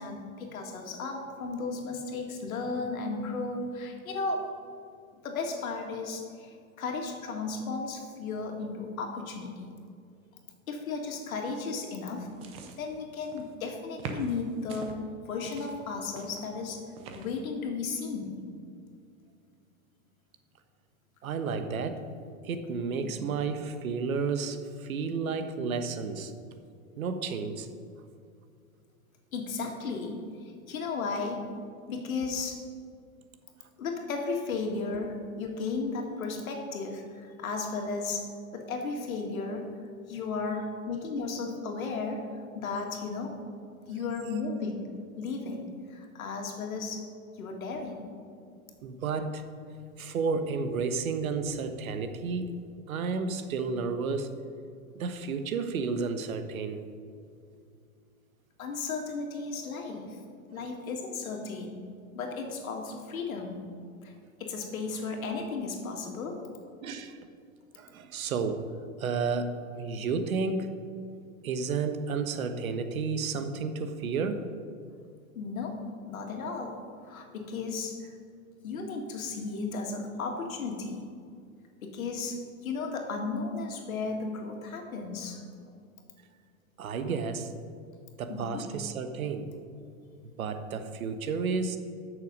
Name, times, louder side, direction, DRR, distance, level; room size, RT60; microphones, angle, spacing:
voice 1, 0.0-4.5 5.2-9.7 10.7-12.3 12.8-14.9 15.3-16.8 17.2-18.4 23.0-23.1 29.3-31.5 31.9-32.6 33.8-38.3 38.5-39.7 40.1-43.3 43.9-47.1 47.4-48.1 58.6-60.2 60.5-61.8 62.1-63.6 64.0-64.1 64.4-66.5 75.4-78.0 78.6-81.1 81.8-85.5 88.3-88.6, left 4 dB, 80° left, 2 dB, 2.1 m, -35 dB
sound 1, 12.1-13.6 14.0-14.9 15.5-17.4, right 4 dB, 15° right, 0.4 m, -44 dB
voice 2, 21.2-22.0 22.4-26.3 27.0-27.7 48.8-49.4 50.0-52.5 52.9-54.3 54.9-56.8 60.5-60.7 66.8-67.2 67.8-68.7 69.0-70.7 71.4-74.4 86.8-87.6 88.2-89.5 90.4-91.8, right 5 dB, 85° right, 8 dB, 1.1 m, -31 dB
13.0 x 6.6 x 5.3 m, 2.3 s
hypercardioid pair, 150°, 41 cm